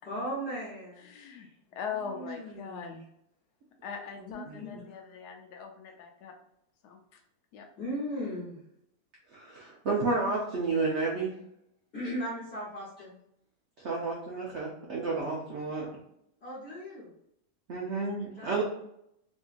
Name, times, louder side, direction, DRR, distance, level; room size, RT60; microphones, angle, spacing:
voice 1, 0.0-3.0 4.1-4.8 7.8-8.6 11.9-13.2 16.4-17.1 18.4-18.6, equal, 45° left, -8 dB, 1.1 m, -38 dB
voice 2, 1.0-3.0 3.8-6.3 6.8-7.0 7.5-7.7, left 6 dB, 75° left, 3 dB, 1.1 m, -41 dB
voice 3, 9.3-11.3 13.8-15.9 17.7-18.6, right 3 dB, 60° right, -4 dB, 0.7 m, -31 dB
3.7 x 2.7 x 2.4 m, 0.76 s
omnidirectional pair, 1.9 m